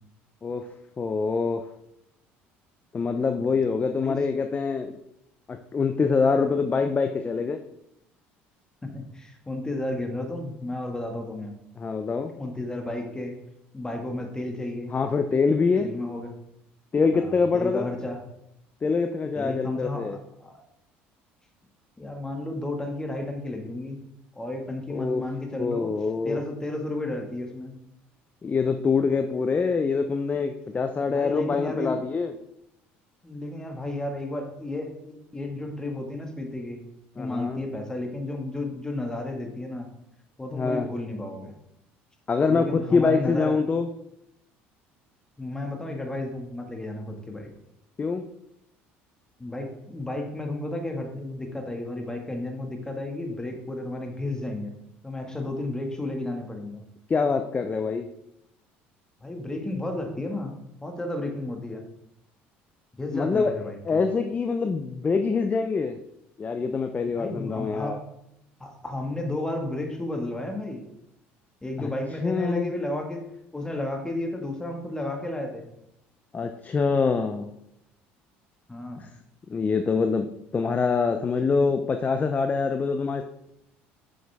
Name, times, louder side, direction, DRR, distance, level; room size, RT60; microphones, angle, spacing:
voice 1, 1.0-1.6 2.9-5.0 5.5-7.6 11.8-12.3 14.9-15.9 16.9-17.9 18.8-20.2 24.9-25.2 25.6-26.4 28.4-32.3 37.2-37.6 40.5-40.9 42.3-43.9 48.0-48.2 57.1-58.1 63.1-63.5 63.8-66.0 66.4-68.0 71.8-71.9 72.2-72.7 76.3-77.5 79.0-79.1 79.5-83.2, left 4 dB, 30° left, 7 dB, 0.6 m, -25 dB
voice 2, 8.8-11.6 12.4-13.4 13.7-14.9 15.7-16.4 17.1-18.2 19.3-20.6 22.0-24.0 24.4-25.9 26.2-27.8 30.7-32.0 33.2-36.8 37.2-39.9 40.4-41.5 42.5-43.6 45.4-47.5 49.4-54.7 55.0-56.8 59.2-61.9 63.0-64.0 67.1-68.0 68.6-70.9 71.6-75.7 78.7-79.1, left 1 dB, 15° left, 3 dB, 1.9 m, -33 dB
8.8 x 6.3 x 3.5 m, 0.80 s
supercardioid pair, 80°, 5 cm